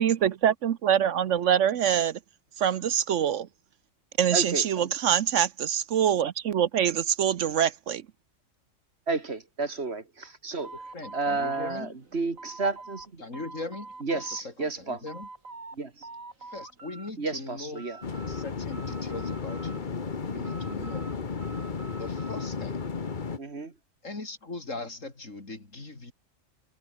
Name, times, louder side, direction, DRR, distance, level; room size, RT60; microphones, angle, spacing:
voice 1, 0.0-2.2 2.6-3.5 4.2-8.0, right 9 dB, 70° right, 1.1 m, -24 dB
voice 2, 4.3-4.7 9.1-10.7 11.1-13.2 14.0-15.0 15.7-16.1 17.2-18.0 23.4-23.7, right 3 dB, 50° right, 2.5 m, -31 dB
sound 1, 10.6-13.1 13.3-14.4 14.8-15.8 16.0-17.1 17.5-18.4 18.7-20.0 20.4-22.5, right 3 dB, 85° right, 4.1 m, -46 dB
voice 3, 10.9-11.9 13.2-15.3 16.4-17.9 18.3-20.0 20.3-21.1 22.0-22.8 24.0-26.1, left 3 dB, 70° left, 4.4 m, -40 dB
sound 2, 18.0-23.4, left 5 dB, 40° left, 1.3 m, -33 dB
omnidirectional pair, 1.4 m